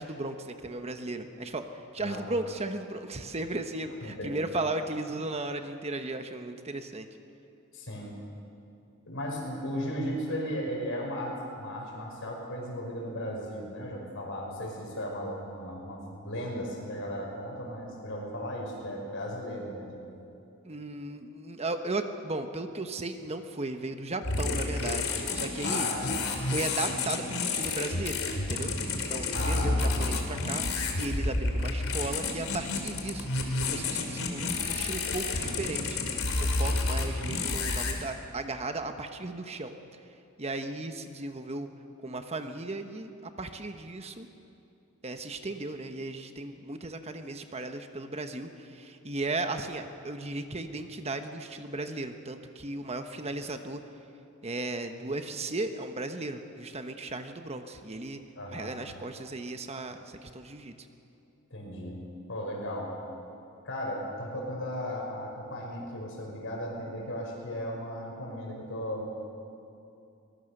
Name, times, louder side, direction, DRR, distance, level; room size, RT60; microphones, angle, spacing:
voice 1, 0.0-7.1 20.6-25.9 26.5-39.8 40.4-41.7 42.0-44.3 45.0-53.8 54.4-58.2 58.5-60.9, right 2 dB, 30° right, 7 dB, 1.1 m, -36 dB
voice 2, 4.0-4.4 7.7-8.1 9.0-20.0 25.6-26.1 29.3-30.2 58.4-58.8 61.5-63.0 63.6-69.1, equal, 65° left, 0 dB, 5.6 m, -36 dB
sound 1, 24.2-37.9, left 3 dB, 80° left, 3.0 m, -30 dB
23.5 x 20.0 x 6.7 m, 2.7 s
head